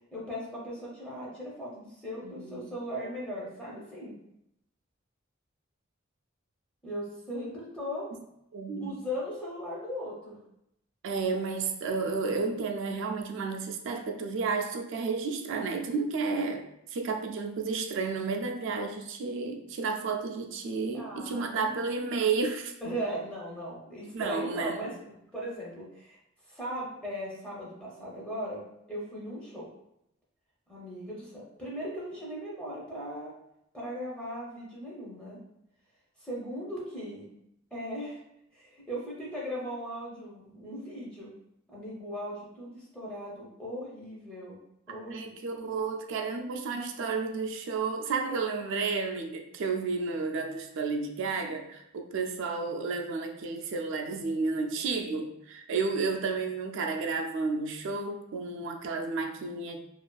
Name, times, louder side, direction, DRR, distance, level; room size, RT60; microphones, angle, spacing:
voice 1, 0.1-4.2 6.8-8.1 8.8-10.4 20.9-21.6 22.8-26.2 26.5-28.6 28.9-29.7 30.7-33.3 33.7-35.4 36.2-37.2 37.7-38.2 38.5-41.3 41.7-44.6 44.9-45.4 48.3-48.4, equal, 5° left, -6 dB, 0.5 m, -38 dB
voice 2, 2.2-2.7 8.5-8.9 11.0-16.6 16.9-22.7 24.1-24.9 45.1-59.8, right 4 dB, 65° right, 4 dB, 0.3 m, -32 dB
2.4 x 2.4 x 2.2 m, 0.79 s
head